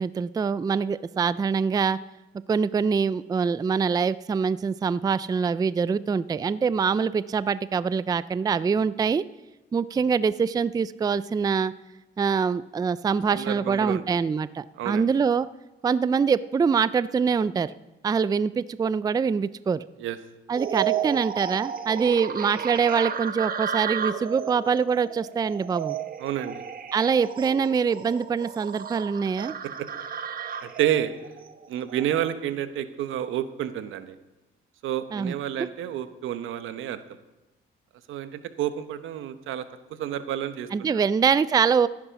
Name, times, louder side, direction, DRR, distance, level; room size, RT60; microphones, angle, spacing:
voice 1, 0.0-2.0 2.5-9.2 9.7-11.7 12.2-15.5 15.8-17.7 18.0-19.8 20.5-26.0 26.9-29.5 35.1-35.3 40.7-41.9, right 6 dB, 20° right, 17 dB, 0.3 m, -24 dB
voice 2, 13.3-14.2 14.8-15.1 20.0-20.2 26.2-26.6 30.6-31.1 31.7-34.2 34.8-37.0 38.1-41.0, right 11 dB, 85° right, 11 dB, 0.9 m, -30 dB
sound 1, 20.5-32.3, right 8 dB, 45° right, 1.0 m, -33 dB
14.0 x 9.7 x 5.8 m, 1.0 s
cardioid pair, 90°, 20 cm